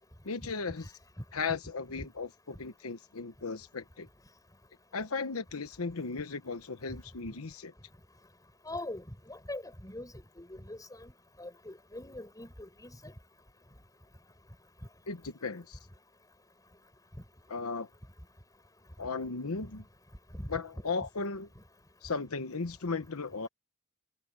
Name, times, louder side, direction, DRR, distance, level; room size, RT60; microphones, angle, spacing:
voice 1, 0.2-0.9 1.3-4.1 4.9-7.7 15.1-15.8 17.5-17.9 19.0-19.8 20.5-21.5 22.0-23.5, left 4 dB, 85° left, 1.0 m, -36 dB
voice 2, 8.7-11.1 11.4-13.1 20.3-20.5, left 1 dB, 15° left, 6.4 m, -42 dB
head